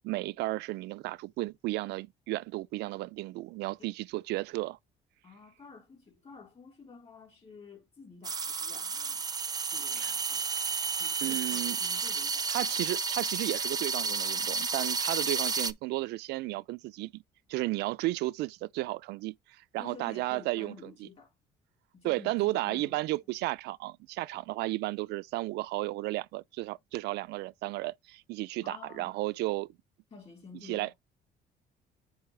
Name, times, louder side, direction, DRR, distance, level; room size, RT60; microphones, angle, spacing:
voice 1, 0.0-4.8 10.0-10.1 11.2-11.8 12.5-17.2 17.5-21.1 22.0-29.7 30.7-30.9, right 19 dB, 80° right, 0.4 m, -33 dB
voice 2, 5.2-9.2 9.7-10.5 10.9-12.5 19.8-21.3 21.9-23.0 28.6-29.2 30.1-30.9, left 4 dB, 35° left, 3.9 m, -51 dB
sound 1, 8.2-15.7, right 5 dB, 25° right, 0.5 m, -31 dB
9.6 x 3.4 x 3.2 m
cardioid pair, 110°, 17 cm